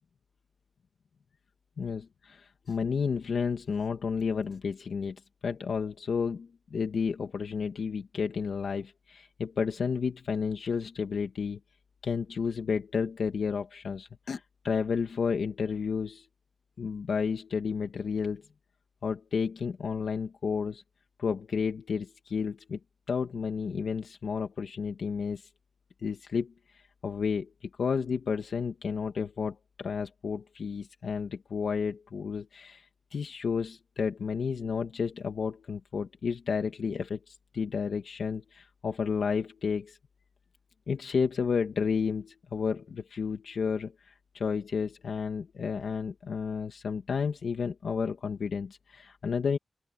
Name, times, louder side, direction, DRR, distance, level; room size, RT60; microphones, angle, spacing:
voice 1, 1.8-11.6 12.0-16.3 16.8-18.4 19.0-20.8 21.2-22.8 23.1-25.5 26.0-32.9 33.1-40.0 40.9-49.6, left 6 dB, 75° left, 2.0 m, -31 dB
wide cardioid pair, 170°, 0 cm